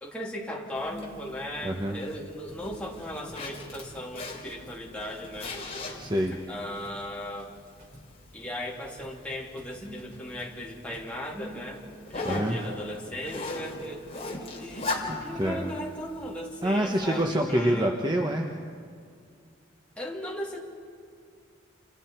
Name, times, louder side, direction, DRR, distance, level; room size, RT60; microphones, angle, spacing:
voice 1, 0.0-5.6 6.5-7.5 8.3-17.9 20.0-20.6, equal, 5° left, -3 dB, 3.0 m, -37 dB
Zipper (clothing), 0.8-17.2, left 3 dB, 30° left, 3.3 m, -40 dB
voice 2, 1.6-2.0 6.0-6.4 12.2-12.6 14.8-15.7 16.6-18.5, right 1 dB, 20° right, 1 dB, 1.1 m, -27 dB
sound 1, 2.5-2.7 3.0-3.6 3.8-4.1 4.4-6.5 6.8-7.1 7.4-8.2 9.0-11.2, right 1 dB, 45° right, 4.8 m, -53 dB
29.0 x 28.5 x 4.6 m, 2.2 s
head